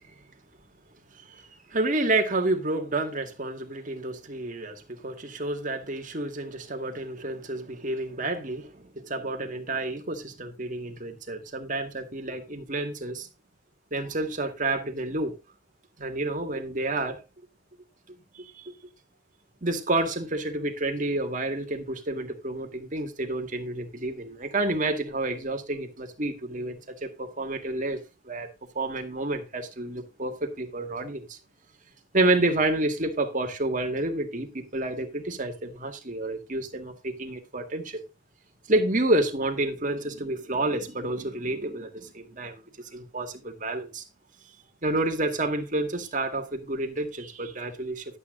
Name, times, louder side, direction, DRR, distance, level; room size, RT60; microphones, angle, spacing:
voice 1, 1.7-13.3 13.9-15.3 16.0-17.2 18.4-18.7 19.6-28.0 28.3-28.5 28.8-31.4 32.1-38.0 38.7-42.6 42.9-44.0 44.8-48.2, right 2 dB, 45° right, 2.0 m, -29 dB
12.0 x 8.1 x 3.8 m
head